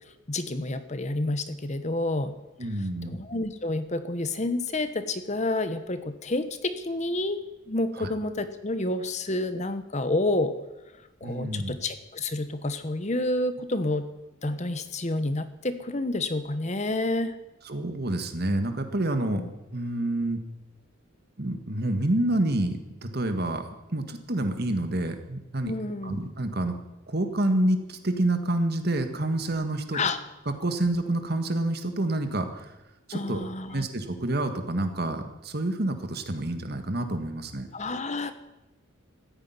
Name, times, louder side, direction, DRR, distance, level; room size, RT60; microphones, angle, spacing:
voice 1, 0.3-2.3 3.1-7.4 7.7-10.5 11.2-14.1 14.4-17.4 19.3-19.5 25.6-26.2 29.9-30.2 33.1-33.9 37.7-38.3, left 2 dB, 35° left, 10 dB, 1.0 m, -29 dB
voice 2, 2.6-3.2 8.0-8.1 11.2-11.7 17.6-19.4 19.7-20.4 21.4-23.6 23.9-25.7 26.0-26.8 27.1-30.0 30.6-32.7 33.1-33.4 33.7-37.7, right 1 dB, 50° right, 7 dB, 1.8 m, -28 dB
15.0 x 10.0 x 9.6 m, 0.98 s
head